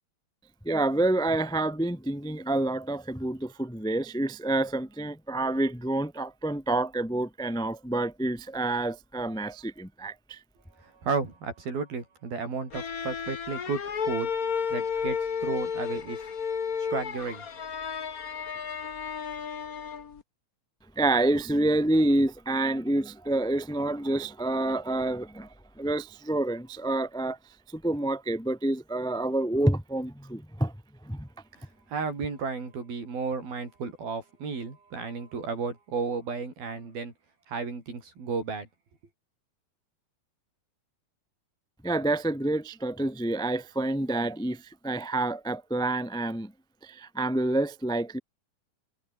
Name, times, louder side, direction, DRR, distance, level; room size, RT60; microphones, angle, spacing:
voice 1, 0.6-10.4 20.9-25.5 25.8-27.4 27.7-30.7 31.0-31.3 41.8-46.5 46.8-48.2, right 2 dB, 5° left, 0.4 m, -28 dB
voice 2, 10.8-14.3 14.7-16.2 16.8-17.4 31.9-37.1 37.5-38.7, right 4 dB, 85° right, 8.2 m, -33 dB
sound 1, 12.7-20.2, left 6 dB, 55° left, 0.9 m, -32 dB
omnidirectional pair, 4.1 m